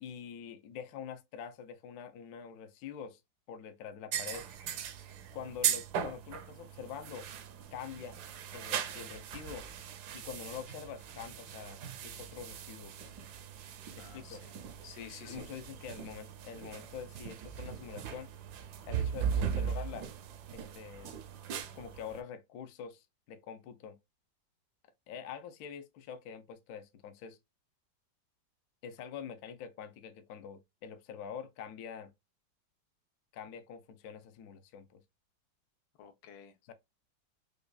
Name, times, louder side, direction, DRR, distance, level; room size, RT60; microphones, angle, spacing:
voice 1, 0.0-3.2 3.5-4.5 5.3-7.3 7.7-8.2 8.5-9.7 10.1-12.9 14.0-14.4 15.2-18.3 18.8-20.1 20.5-21.1 21.7-24.0 25.1-27.4 28.8-32.1 33.3-35.0 36.6-36.7, left 7 dB, 70° left, 0.9 m, -45 dB
sound 1, 4.1-22.2, right 8 dB, 70° right, 1.1 m, -39 dB
voice 2, 14.0-15.5 36.0-36.5, left 8 dB, 85° left, 1.5 m, -51 dB
5.0 x 2.3 x 2.2 m
omnidirectional pair, 2.0 m